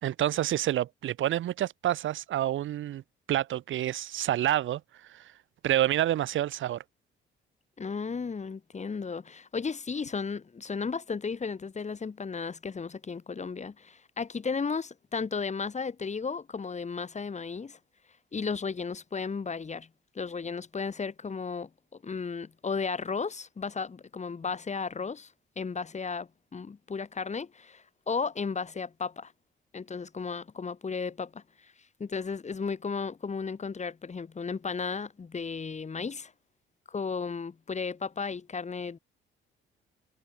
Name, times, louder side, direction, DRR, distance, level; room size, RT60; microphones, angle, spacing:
voice 1, 0.0-3.0 3.3-4.8 5.1-5.3 5.6-6.8, right 12 dB, 75° right, 3.5 m, -28 dB
voice 2, 7.8-17.8 18.3-19.9 20.1-29.3 29.7-31.4 32.0-36.3 36.9-39.0, left 5 dB, 35° left, 7.6 m, -34 dB
cardioid pair, 90°, 20 cm